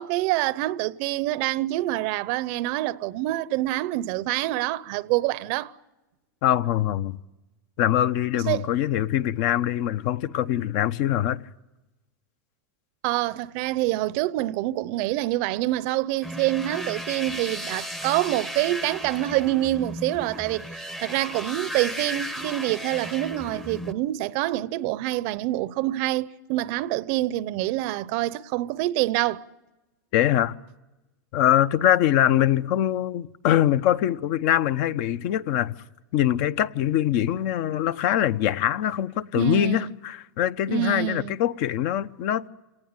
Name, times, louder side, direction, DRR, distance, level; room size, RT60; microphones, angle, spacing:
voice 1, 0.0-5.7 8.5-8.7 13.0-29.4 39.3-39.9 40.7-41.3, right 16 dB, 45° right, 0.7 m, -26 dB
voice 2, 6.4-7.2 7.8-11.4 30.1-30.6 31.3-35.8 36.1-42.5, left 11 dB, 50° left, 0.9 m, -23 dB
sound 1, 16.2-23.9, equal, 5° left, 0.9 m, -35 dB
27.0 x 18.5 x 9.0 m
supercardioid pair, 145°, 10 cm